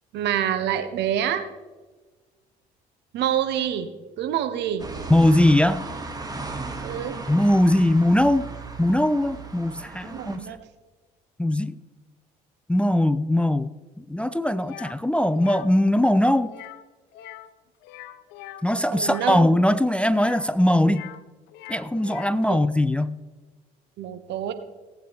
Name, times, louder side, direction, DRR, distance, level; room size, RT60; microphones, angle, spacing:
voice 1, 0.1-1.4 3.1-3.9 4.2-4.9 6.8-7.2 10.0-10.6 18.7-19.4 22.5-22.6 24.0-24.5, right 10 dB, 65° right, 10 dB, 1.2 m, -27 dB
sound 1, 4.8-10.4, right 3 dB, 20° right, 2.1 m, -36 dB
voice 2, 5.1-5.8 7.3-8.5 8.8-10.4 11.4-11.8 12.7-13.7 14.0-16.5 18.6-21.1 21.7-23.2, left 1 dB, 5° left, 14 dB, 0.5 m, -20 dB
sound 2, 14.6-15.0 15.3-15.7 16.5-16.9 17.1-17.5 17.8-19.3 20.1-21.2 21.5-22.4, left 13 dB, 70° left, 0.7 m, -42 dB
18.0 x 8.5 x 3.5 m, 1.2 s
hypercardioid pair, 60°, 19 cm